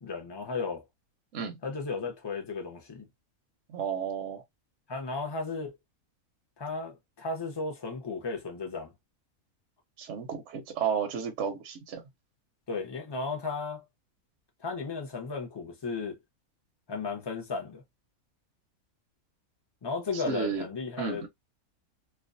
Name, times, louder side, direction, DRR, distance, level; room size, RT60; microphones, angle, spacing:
voice 1, 0.0-0.8 1.6-3.1 4.9-5.7 6.6-8.9 12.7-13.8 14.6-16.2 16.9-17.8 19.8-21.2, left 4 dB, 30° left, 0.4 m, -34 dB
voice 2, 3.7-4.4 10.0-12.0 20.1-20.6 21.0-21.3, right 7 dB, 65° right, 0.8 m, -32 dB
2.4 x 2.3 x 2.4 m
omnidirectional pair, 1.5 m